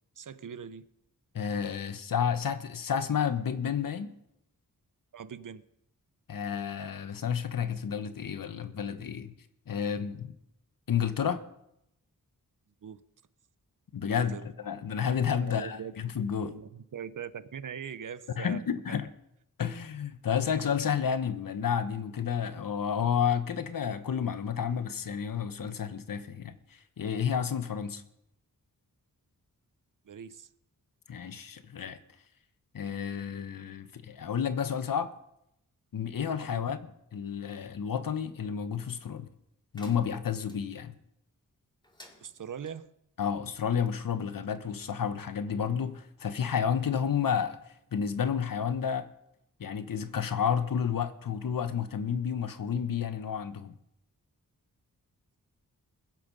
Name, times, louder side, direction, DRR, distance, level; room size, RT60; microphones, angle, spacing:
voice 1, 0.2-0.9 5.1-5.6 12.8-13.0 14.0-14.5 15.4-15.9 16.4-18.6 18.9-19.0 30.0-30.5 36.5-36.7 42.2-42.9, right 7 dB, 65° right, 0.7 m, -41 dB
voice 2, 1.3-4.1 6.3-9.3 9.7-10.3 10.9-11.4 13.9-14.4 14.6-16.6 18.4-19.1 19.6-26.6 27.0-28.0 31.1-32.0 32.7-35.1 35.9-39.3 39.7-40.9 43.2-47.6 47.9-49.1 49.6-53.7, left 7 dB, 70° left, 1.1 m, -31 dB
sound 1, 39.7-40.6 41.8-42.7, left 1 dB, 15° left, 2.2 m, -55 dB
21.5 x 7.6 x 5.4 m
wide cardioid pair, 105°, 35 cm